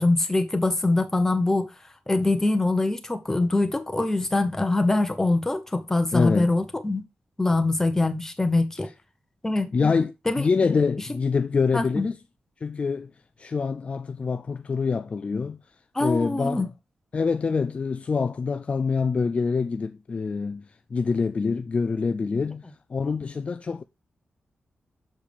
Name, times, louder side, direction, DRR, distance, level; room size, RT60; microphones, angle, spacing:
voice 1, 0.0-1.7 2.1-7.0 7.4-8.9 9.4-9.7 10.3-10.4 11.7-12.1 15.9-16.7, left 2 dB, 10° left, 0.9 m, -23 dB
voice 2, 6.1-6.5 9.7-12.1 12.6-13.1 13.4-15.6 16.0-16.7 17.1-23.8, left 5 dB, 35° left, 0.3 m, -25 dB
7.3 x 6.6 x 3.4 m
wide cardioid pair, 170°, 4 cm